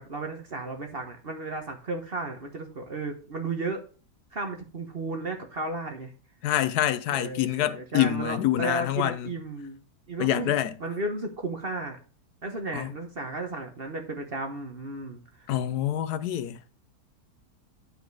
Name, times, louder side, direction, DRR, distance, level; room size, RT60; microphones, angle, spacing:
voice 1, 0.0-3.8 4.3-6.1 7.1-9.8 10.1-12.0 12.4-15.5, right 2 dB, 40° right, 1.2 m, -34 dB
voice 2, 6.4-9.3 10.2-10.7 12.7-12.9 15.5-16.6, left 12 dB, 75° left, 1.2 m, -26 dB
9.1 x 5.2 x 4.6 m
omnidirectional pair, 1.7 m